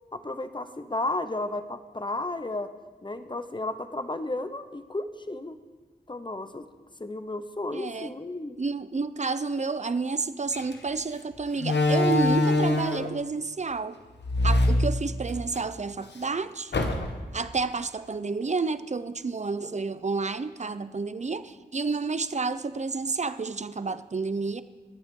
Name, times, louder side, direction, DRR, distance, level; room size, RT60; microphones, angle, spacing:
voice 1, 0.1-2.7 3.0-5.6 6.1-6.6 7.0-8.6, left 2 dB, 25° left, 10 dB, 0.8 m, -33 dB
voice 2, 7.7-8.1 8.6-14.0 14.4-16.7 17.3-24.6, right 4 dB, 40° right, 13 dB, 0.6 m, -30 dB
Slam, 10.5-10.7 11.6-13.2 14.2-15.6 16.0-16.1 16.7-17.3, left 2 dB, 85° left, 1.1 m, -24 dB
20.5 x 8.8 x 3.8 m, 1.3 s
wide cardioid pair, 60°, 17 cm